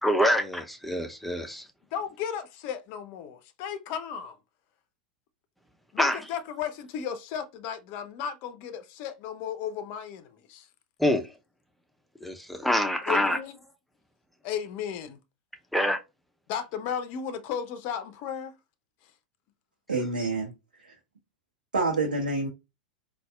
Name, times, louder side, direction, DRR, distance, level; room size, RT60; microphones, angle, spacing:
voice 1, 0.0-1.6 6.0-6.2 11.0-11.3 12.2-13.4 15.7-16.0, left 1 dB, ahead, 0.6 m, -25 dB
voice 2, 1.9-4.4 5.9-10.7 13.1-13.6 14.4-15.2 16.5-18.6, left 8 dB, 45° left, 0.5 m, -34 dB
voice 3, 19.9-20.5 20.8-20.9 21.7-22.5, right 3 dB, 80° right, 0.9 m, -27 dB
4.0 x 2.3 x 2.3 m
figure-of-eight pair, 90°, 5 cm